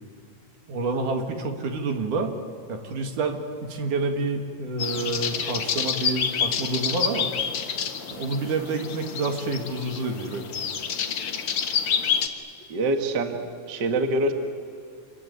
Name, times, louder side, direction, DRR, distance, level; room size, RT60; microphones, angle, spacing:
voice 1, 0.7-2.3 2.7-7.3 8.1-10.7, right 3 dB, 70° right, 4 dB, 3.5 m, -28 dB
sound 1, 4.8-12.3, left 7 dB, 50° left, 1.9 m, -28 dB
voice 2, 12.7-13.4 13.7-14.3, right 2 dB, 40° right, 5 dB, 1.9 m, -24 dB
28.0 x 22.0 x 9.5 m, 2.3 s
omnidirectional pair, 3.8 m